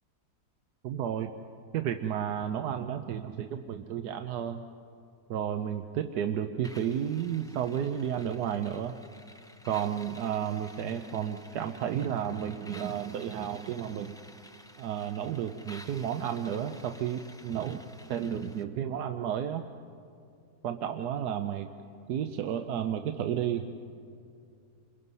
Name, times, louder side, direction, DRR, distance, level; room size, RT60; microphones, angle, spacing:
voice 1, 0.8-1.3 1.7-4.6 5.3-9.0 9.6-14.2 14.8-17.8 18.1-19.6 20.6-21.7 22.1-23.7, right 9 dB, 90° right, 7 dB, 1.3 m, -32 dB
sound 1, 6.6-18.6, left 1 dB, 5° left, 0.4 m, -53 dB
28.5 x 22.5 x 5.5 m, 2.5 s
omnidirectional pair, 1.7 m